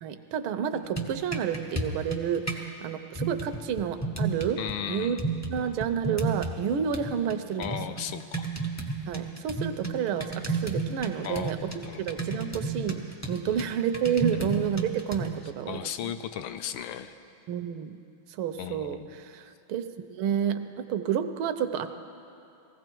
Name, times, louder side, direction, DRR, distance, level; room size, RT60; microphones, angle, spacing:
voice 1, 0.0-5.2 5.5-7.8 9.1-11.7 12.0-16.1 17.5-18.0 18.3-19.8 20.1-21.9, right 8 dB, 80° right, 10 dB, 1.5 m, -30 dB
sound 1, 0.7-2.7 3.1-4.7 5.2-6.6 6.9-15.4, right 3 dB, 25° left, 0.3 m, -33 dB
voice 2, 4.6-5.2 7.6-8.4 11.2-12.1 13.5-13.6 14.3-14.6 15.7-17.1 18.6-19.1, left 10 dB, 75° left, 10 dB, 1.4 m, -36 dB
19.5 x 15.5 x 4.5 m, 2.6 s
omnidirectional pair, 2.4 m